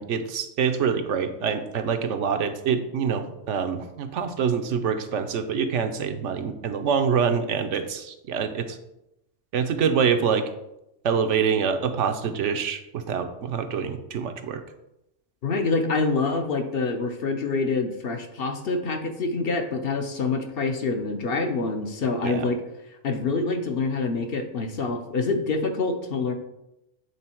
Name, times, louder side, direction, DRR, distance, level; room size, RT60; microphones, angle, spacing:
voice 1, 0.0-8.8 9.5-10.4 11.0-14.6 22.2-22.5, right 6 dB, 75° right, 7 dB, 1.0 m, -25 dB
voice 2, 15.4-22.6 23.0-26.3, left 3 dB, 55° left, 4 dB, 0.9 m, -26 dB
8.4 x 3.8 x 4.4 m, 0.87 s
omnidirectional pair, 1.3 m